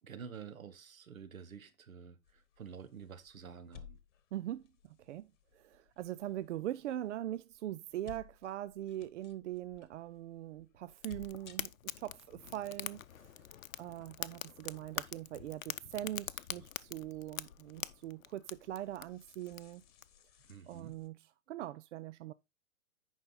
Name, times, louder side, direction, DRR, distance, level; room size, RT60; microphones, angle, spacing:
voice 1, 0.0-4.0 20.4-21.0, right 6 dB, 90° right, 1.6 m, -49 dB
sound 1, 2.2-21.1, left 9 dB, 60° left, 1.5 m, -61 dB
voice 2, 4.3-11.7 12.0-13.5 13.8-19.8 20.7-21.2 21.5-22.3, right 13 dB, 60° right, 0.6 m, -42 dB
Fire, 11.0-20.0, left 11 dB, 85° left, 0.7 m, -45 dB
10.0 x 5.4 x 4.0 m
hypercardioid pair, 140°, 40 cm